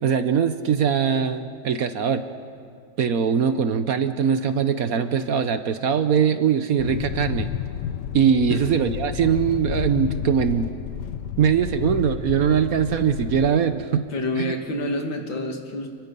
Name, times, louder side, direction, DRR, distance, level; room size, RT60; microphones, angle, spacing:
voice 1, 0.0-2.2 3.0-7.5 8.1-10.7 11.4-14.0 14.4-14.5, right 7 dB, 60° right, 10 dB, 1.1 m, -21 dB
sound 1, 6.8-13.5, left 10 dB, 70° left, 1.3 m, -31 dB
voice 2, 14.1-15.9, left 1 dB, 90° left, 3 dB, 2.8 m, -28 dB
29.5 x 22.0 x 5.4 m, 2.2 s
omnidirectional pair, 2.0 m